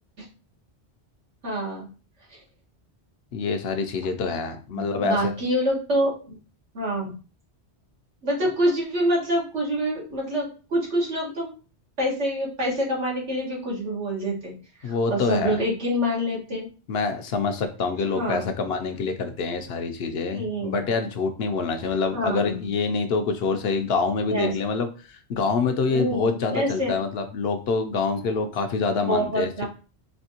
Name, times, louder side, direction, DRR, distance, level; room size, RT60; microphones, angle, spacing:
voice 1, 1.4-1.8 4.7-6.4 6.7-7.1 8.2-11.5 12.0-14.5 14.8-16.7 18.1-18.5 20.3-20.7 22.1-22.7 24.3-24.5 25.9-27.0 29.0-29.7, equal, 90° right, -4 dB, 1.9 m, -26 dB
voice 2, 3.3-5.3 14.8-15.6 16.9-24.9 25.3-29.5, left 4 dB, 70° left, 7 dB, 0.8 m, -26 dB
4.3 x 2.7 x 2.8 m, 0.35 s
omnidirectional pair, 1.2 m